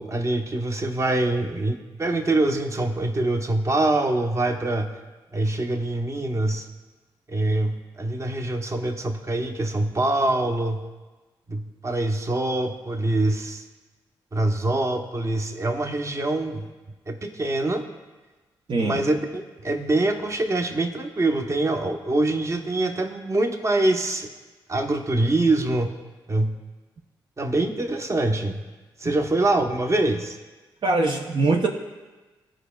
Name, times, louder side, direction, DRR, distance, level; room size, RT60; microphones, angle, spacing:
voice 1, 0.0-4.9 5.3-6.7 7.3-10.8 11.5-13.6 14.3-16.7 17.1-17.8 18.7-24.3 24.7-25.9 26.3-26.6 27.4-28.6 29.0-30.4, right 2 dB, 30° right, 4 dB, 0.9 m, -24 dB
voice 2, 30.8-31.7, right 3 dB, 55° right, 1 dB, 0.7 m, -22 dB
15.0 x 5.1 x 2.3 m, 1.2 s
supercardioid pair, 50°, 10 cm